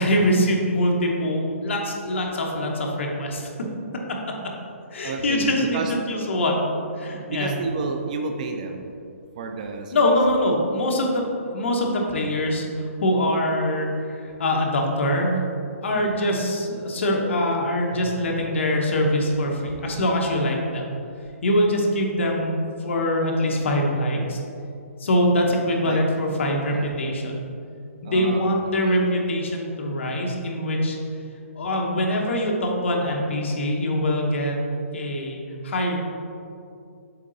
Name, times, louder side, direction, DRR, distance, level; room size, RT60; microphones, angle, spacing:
voice 1, 0.0-3.5 4.9-5.8 6.1-7.5 9.9-11.2 11.5-15.4 15.8-20.9 21.4-24.4 25.0-27.4 28.0-31.0 31.6-34.5 34.9-36.0, left 1 dB, 55° left, 0 dB, 1.1 m, -23 dB
voice 2, 5.0-5.9 7.3-9.0 9.4-10.0 15.9-16.2 25.8-26.0 26.7-26.9 28.0-29.1, right 4 dB, 30° right, 4 dB, 0.4 m, -31 dB
sound 1, 17.9-20.1, right 1 dB, 75° right, 1.1 m, -41 dB
7.3 x 3.7 x 4.0 m, 2.5 s
hypercardioid pair, 170°, 8 cm